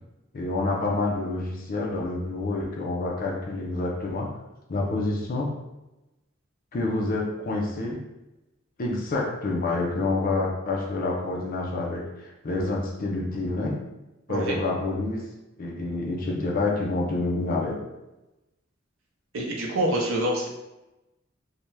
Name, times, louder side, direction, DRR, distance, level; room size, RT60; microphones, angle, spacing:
voice 1, 0.3-4.3 4.7-5.6 6.7-8.0 8.8-13.8 14.3-15.3 15.6-17.8, left 2 dB, 45° left, -1 dB, 0.4 m, -28 dB
voice 2, 19.3-20.5, right 1 dB, 75° right, -1 dB, 0.6 m, -26 dB
2.7 x 2.2 x 3.1 m, 0.98 s
head